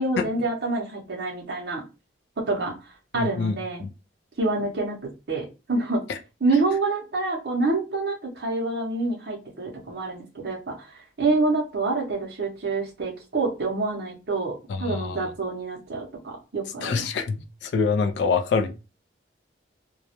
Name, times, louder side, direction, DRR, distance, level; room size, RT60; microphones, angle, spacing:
voice 1, 0.0-1.8 2.4-2.7 3.1-3.8 4.4-6.0 6.4-17.1, right 3 dB, 60° right, 0.6 m, -27 dB
voice 2, 3.2-3.9 6.1-6.2 14.7-15.3 16.8-18.7, left 5 dB, 70° left, 0.3 m, -26 dB
2.2 x 2.0 x 2.7 m
head